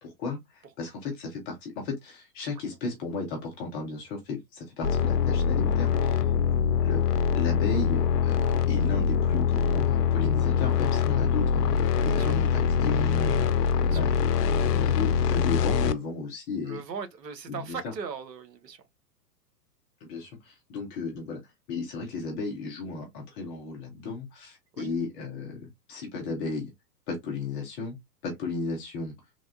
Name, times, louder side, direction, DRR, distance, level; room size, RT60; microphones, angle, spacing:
voice 1, 0.0-6.3 6.8-8.4 8.7-16.8 17.5-17.9 20.0-21.4 21.7-26.7 27.1-28.0 28.2-29.2, left 3 dB, 15° left, 0.4 m, -34 dB
sound 1, 4.8-15.9, left 6 dB, 70° left, 0.6 m, -24 dB
voice 2, 16.7-18.8 24.7-24.9, right 6 dB, 75° right, 0.9 m, -38 dB
3.3 x 2.3 x 2.5 m
figure-of-eight pair, 115°, 50 cm